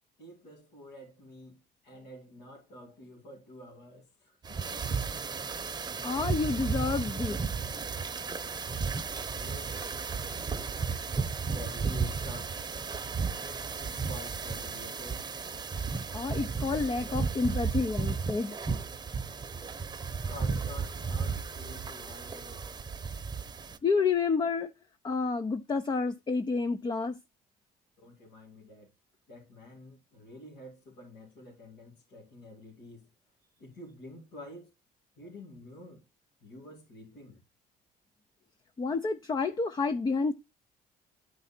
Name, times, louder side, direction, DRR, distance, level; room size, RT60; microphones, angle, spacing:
voice 1, 0.2-4.8 9.3-9.8 11.3-12.6 13.8-15.3 19.6-19.7 20.2-22.7 28.0-28.9 29.3-33.1 33.6-34.7 35.2-36.1 36.4-37.4, left 1 dB, 90° left, 2.8 m, -49 dB
sound 1, 4.4-23.8, right 5 dB, 25° right, 0.9 m, -34 dB
voice 2, 6.0-7.4 16.1-18.6 23.8-24.7 25.0-27.2 38.8-40.3, left 4 dB, 25° left, 0.6 m, -29 dB
10.5 x 4.7 x 4.3 m
cardioid pair, 110°, 17 cm